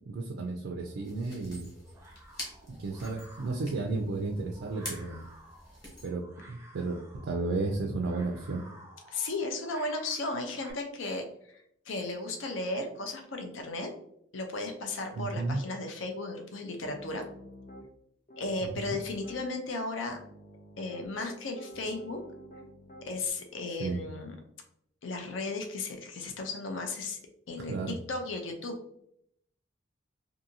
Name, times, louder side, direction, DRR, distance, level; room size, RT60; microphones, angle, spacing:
voice 1, 0.1-1.7 2.7-5.3 6.0-8.6 15.2-15.6 18.6-19.0 23.8-24.0 27.7-28.0, right 3 dB, 75° right, 1 dB, 0.4 m, -33 dB
sound 1, 0.8-10.7, right 1 dB, 15° right, 0.4 m, -54 dB
sound 2, 1.0-6.1, left 1 dB, 20° left, 1.1 m, -46 dB
voice 2, 9.1-11.2 11.5-13.9 14.3-17.2 18.4-20.2 20.8-22.2 23.0-24.4 25.0-27.2 27.5-28.7, left 2 dB, 85° left, 4 dB, 0.6 m, -35 dB
Piano, 16.8-17.9 18.3-19.4 20.1-23.3, equal, 40° left, 0.5 m, -49 dB
2.6 x 2.6 x 2.6 m, 0.72 s
head